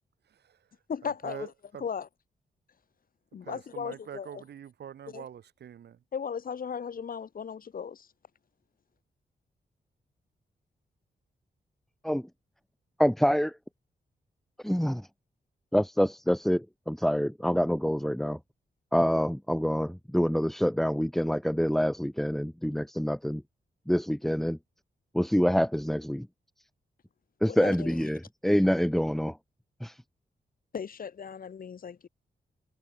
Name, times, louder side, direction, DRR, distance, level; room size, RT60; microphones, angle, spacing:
voice 1, 0.3-0.6 1.0-1.9 3.4-6.0, right 9 dB, 90° right, 4.2 m, -45 dB
voice 2, 0.9-1.5 1.8-2.1 3.3-4.4 5.1-5.2 6.1-8.1 27.5-28.0 30.7-32.1, left 7 dB, 60° left, 2.7 m, -36 dB
voice 3, 13.0-13.5 14.6-15.1 15.7-18.4 18.9-23.4 23.9-24.6 25.1-26.3 27.4-29.4 29.8-30.0, equal, ahead, 1.3 m, -26 dB
wide cardioid pair, 115°, 17 cm